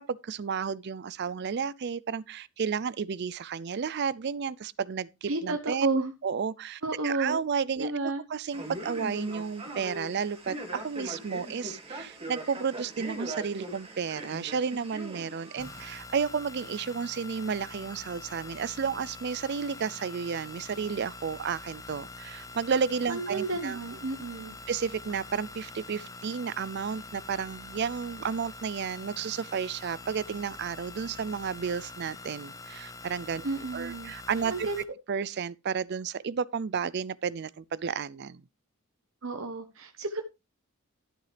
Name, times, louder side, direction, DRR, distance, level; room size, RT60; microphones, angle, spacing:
voice 1, 0.0-5.9 6.2-7.9 8.3-24.0 24.7-33.4 33.7-34.7 35.1-38.4, right 6 dB, 50° right, 0.4 m, -32 dB
voice 2, 5.3-6.1 6.8-7.4 7.8-8.2 23.1-24.5 33.4-34.1 34.5-34.8 39.2-40.2, right 3 dB, 65° right, 1.0 m, -31 dB
Male speech man speaking, 8.5-15.8, right 1 dB, 25° right, 2.2 m, -40 dB
sound 1, 15.6-34.8, left 3 dB, 15° left, 0.6 m, -45 dB
12.0 x 7.8 x 3.3 m
head